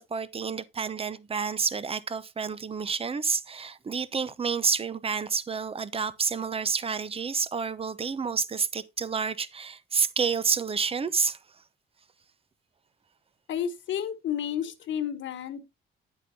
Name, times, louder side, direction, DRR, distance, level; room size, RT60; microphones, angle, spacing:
voice 1, 0.0-11.4, right 5 dB, 30° right, 0.7 m, -29 dB
voice 2, 13.5-15.6, left 9 dB, 75° left, 1.3 m, -31 dB
9.6 x 8.1 x 2.7 m
cardioid pair, 90°, 20 cm